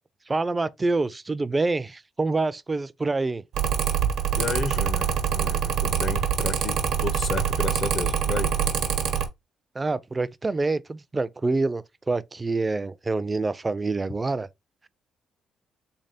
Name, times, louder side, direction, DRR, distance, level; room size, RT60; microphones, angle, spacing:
voice 1, 0.3-3.4 9.7-14.5, right 3 dB, 25° right, 0.3 m, -26 dB
Mechanical fan, 3.5-9.3, right 8 dB, 85° right, 0.8 m, -25 dB
voice 2, 4.3-8.6, left 5 dB, 50° left, 0.5 m, -32 dB
3.6 x 3.3 x 2.7 m
cardioid pair, 90°, 0 cm